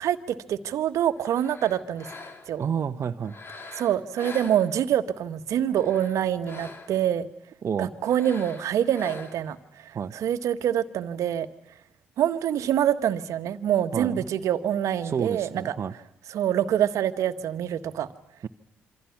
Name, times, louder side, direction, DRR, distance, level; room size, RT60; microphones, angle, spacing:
voice 1, 0.0-2.1 2.5-2.6 3.7-7.3 7.8-11.5 12.2-15.7 16.3-18.1, right 10 dB, 65° right, 11 dB, 1.5 m, -26 dB
sound 1, 1.2-2.7 3.2-5.1 5.6-7.1 8.0-9.6, left 3 dB, 40° left, 3.3 m, -44 dB
voice 2, 2.6-3.3 7.6-7.9 9.9-10.1 13.9-14.3 15.0-15.9, right 7 dB, 50° right, 6 dB, 1.1 m, -29 dB
27.5 x 25.5 x 6.0 m, 0.76 s
hypercardioid pair, 50°, 6 cm